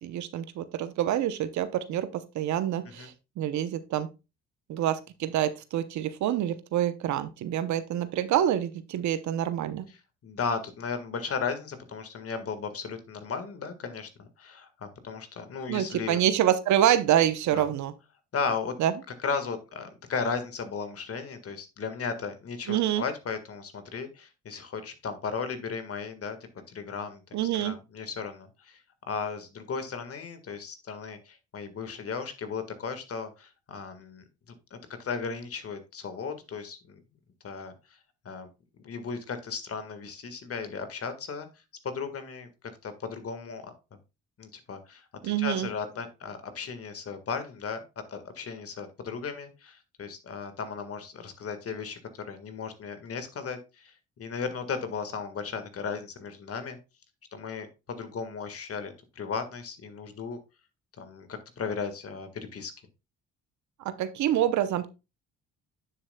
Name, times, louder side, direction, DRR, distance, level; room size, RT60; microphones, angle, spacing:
voice 1, 0.0-4.1 4.7-9.9 15.7-17.9 18.8-18.9 22.7-23.0 27.3-27.8 45.2-45.7 63.8-64.9, right 11 dB, 65° right, 13 dB, 0.8 m, -27 dB
voice 2, 9.9-16.2 17.5-17.6 18.3-18.8 19.2-26.4 26.7-28.8 29.1-34.2 34.7-37.0 37.4-37.7 38.2-38.5 38.8-41.5 41.8-42.5 42.8-43.6 44.4-47.8 48.1-52.0 52.2-56.8 57.3-60.4 61.0-62.7, left 5 dB, 50° left, 9 dB, 1.7 m, -35 dB
9.4 x 7.3 x 2.3 m, 0.27 s
supercardioid pair, 65°, 31 cm